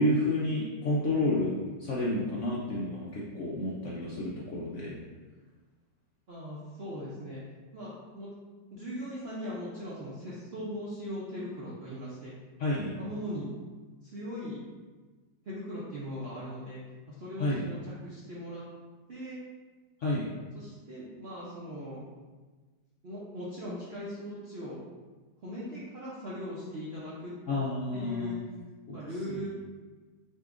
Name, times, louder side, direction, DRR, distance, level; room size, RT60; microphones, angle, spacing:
voice 1, 0.0-1.5 1.8-5.0 12.6-12.9 17.4-17.7 20.0-20.3 27.5-28.4 28.9-29.0 29.3-29.4, left 1 dB, 65° left, -6 dB, 0.8 m, -30 dB
voice 2, 6.3-7.4 7.7-8.3 8.7-12.3 13.0-13.5 14.0-14.6 15.4-16.8 17.2-17.8 18.0-18.6 19.1-19.4 20.5-22.0 23.0-24.8 25.4-27.3 27.9-28.4 28.9-29.5, equal, 55° right, -8 dB, 0.7 m, -39 dB
6.2 x 2.8 x 2.5 m, 1.3 s
omnidirectional pair, 1.9 m